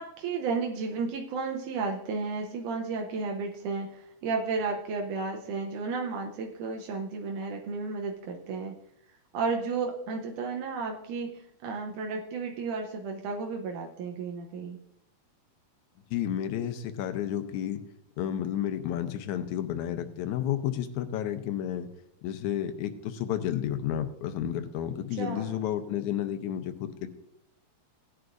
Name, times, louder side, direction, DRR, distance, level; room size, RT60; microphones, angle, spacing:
voice 1, 0.0-8.7 9.3-14.8 25.1-25.6, right 4 dB, 85° right, 1 dB, 2.3 m, -33 dB
voice 2, 16.1-17.8 18.2-21.9 22.2-27.1, left 10 dB, 80° left, 9 dB, 2.1 m, -31 dB
17.5 x 9.5 x 2.6 m, 0.79 s
omnidirectional pair, 3.5 m